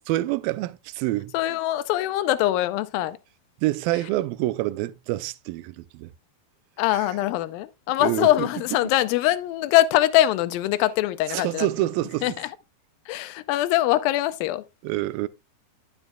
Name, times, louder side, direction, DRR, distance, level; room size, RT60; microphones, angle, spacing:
voice 1, 0.1-1.3 3.6-6.1 6.9-7.1 8.0-8.5 11.3-12.3 14.8-15.3, right 16 dB, 80° right, 2.3 m, -27 dB
voice 2, 1.3-3.2 6.8-11.7 12.2-12.5 13.1-14.6, left 14 dB, 80° left, 2.3 m, -23 dB
11.0 x 7.1 x 2.3 m
omnidirectional pair, 4.4 m